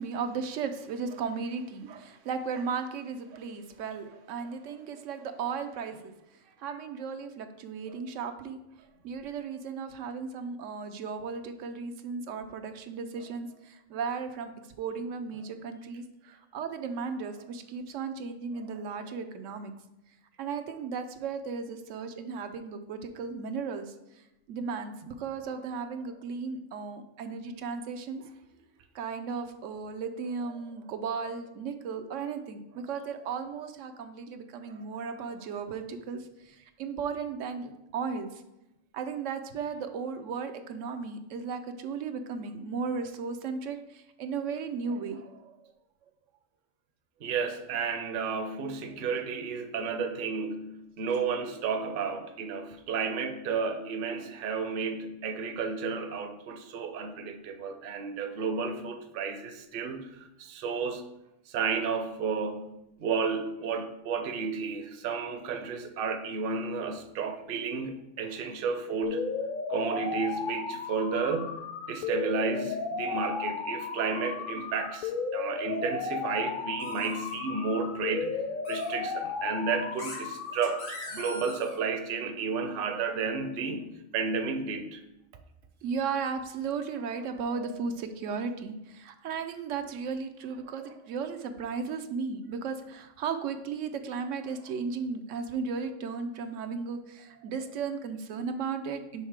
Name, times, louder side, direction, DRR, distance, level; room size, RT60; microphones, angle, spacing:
voice 1, 0.0-6.1 6.6-8.6 9.0-14.5 14.8-16.0 16.5-19.7 20.4-23.9 24.5-28.2 28.9-38.4 38.9-45.7 81.2-81.3 85.8-99.3, right 5 dB, 85° right, 7 dB, 1.0 m, -35 dB
voice 2, 47.2-61.1 61.5-69.4 69.7-71.6 71.9-85.0 87.5-87.8, right 5 dB, 55° right, 7 dB, 0.7 m, -32 dB
sound 1, 69.0-81.0, left 5 dB, 55° left, 0.6 m, -34 dB
sound 2, 76.8-77.4 78.6-78.9 80.0-80.2 80.6-81.8, left 2 dB, 90° left, 2.1 m, -41 dB
5.8 x 3.6 x 4.7 m, 0.89 s
omnidirectional pair, 1.2 m